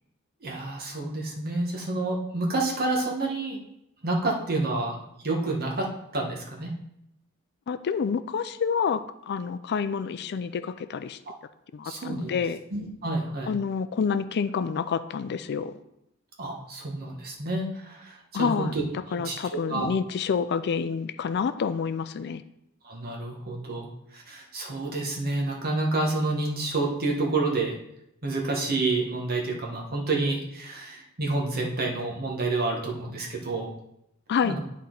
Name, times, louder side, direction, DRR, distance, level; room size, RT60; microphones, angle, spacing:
voice 1, 0.4-3.6 4.0-6.7 11.8-12.3 12.7-13.5 16.4-18.7 19.1-19.4 19.7-19.9 22.8-23.9 24.1-27.7 28.2-33.7 34.4-34.6, right 2 dB, 45° right, -1 dB, 1.5 m, -29 dB
voice 2, 7.7-11.2 11.7-12.6 13.5-15.7 18.3-18.7 19.1-22.4 34.3-34.6, left 6 dB, 50° left, 12 dB, 0.4 m, -28 dB
10.5 x 4.2 x 3.9 m, 0.81 s
head